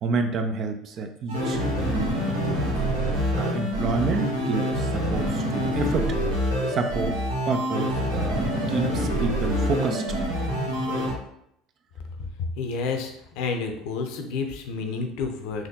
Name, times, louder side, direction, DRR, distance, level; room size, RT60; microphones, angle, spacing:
voice 1, 0.0-2.6 3.4-6.1 6.7-7.2 7.5-10.0, right 4 dB, 50° right, 6 dB, 0.5 m, -29 dB
sound 1, 1.3-11.1, equal, 75° right, 0.9 m, -26 dB
voice 2, 12.4-15.7, left 4 dB, 65° left, 4 dB, 0.6 m, -30 dB
4.0 x 2.9 x 2.8 m, 0.77 s
hypercardioid pair, 70°, 0 cm